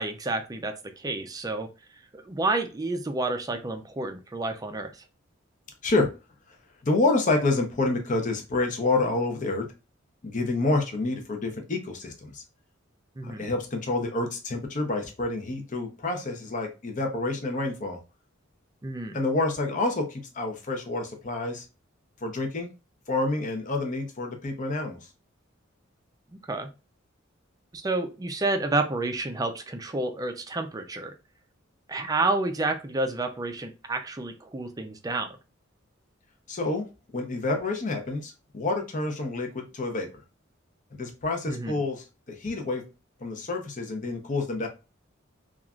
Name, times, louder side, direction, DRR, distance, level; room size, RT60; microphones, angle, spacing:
voice 1, 0.0-1.7 2.1-5.0 13.2-13.5 18.8-19.2 26.5-26.7 27.7-31.1 31.9-35.4 41.5-41.8, right 2 dB, 20° right, 6 dB, 0.4 m, -30 dB
voice 2, 6.8-9.7 10.2-12.4 13.2-18.0 19.1-21.6 22.2-22.7 23.1-25.0 36.5-36.9 37.1-40.1 40.9-42.8 43.2-44.7, left 2 dB, 40° left, 4 dB, 0.6 m, -28 dB
3.1 x 2.4 x 2.3 m, 0.29 s
head